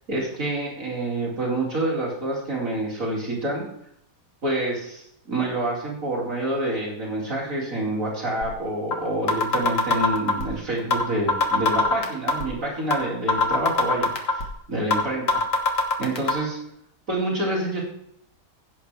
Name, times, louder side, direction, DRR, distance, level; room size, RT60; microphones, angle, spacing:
voice 1, 0.1-3.7 4.4-14.4 14.7-15.4 15.7-16.6 17.1-17.8, right 1 dB, 40° right, -4 dB, 2.8 m, -27 dB
sound 1, 8.4-8.5 8.9-9.0 9.3-10.5 10.9-11.0 11.3-12.5 12.9-13.0 13.3-14.5 14.9-15.0 15.3-16.3, left 4 dB, 45° left, 1.6 m, -20 dB
16.0 x 7.9 x 3.4 m, 0.75 s
omnidirectional pair, 2.2 m